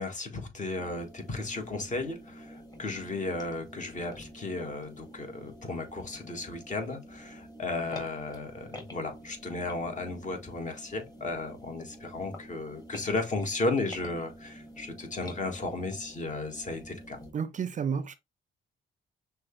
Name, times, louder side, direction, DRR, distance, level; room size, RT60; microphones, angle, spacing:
voice 1, 0.0-17.2, left 2 dB, 40° left, 1.5 m, -34 dB
sound 1, 0.7-17.3, equal, 20° left, 1.6 m, -48 dB
voice 2, 17.3-18.1, right 6 dB, 40° right, 0.5 m, -31 dB
6.0 x 2.3 x 3.0 m
cardioid pair, 90°, 20 cm